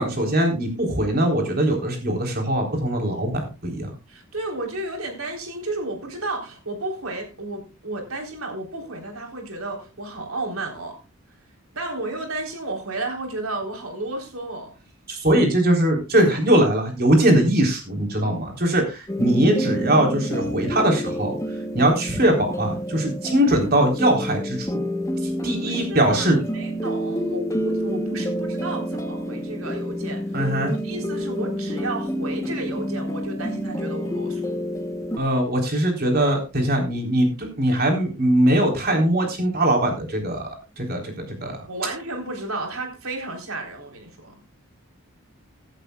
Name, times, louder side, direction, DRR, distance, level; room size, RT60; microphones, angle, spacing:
voice 1, 0.0-3.9 15.1-21.4 21.7-24.7 25.4-26.4 30.3-30.7 35.2-40.5 40.8-41.6, right 1 dB, 45° right, 3.8 m, -21 dB
voice 2, 4.1-11.0 11.7-14.8 25.5-34.4 41.7-44.3, right 2 dB, 85° right, 3.9 m, -32 dB
sound 1, 19.1-35.2, equal, 15° left, 1.0 m, -28 dB
16.5 x 11.5 x 2.3 m
head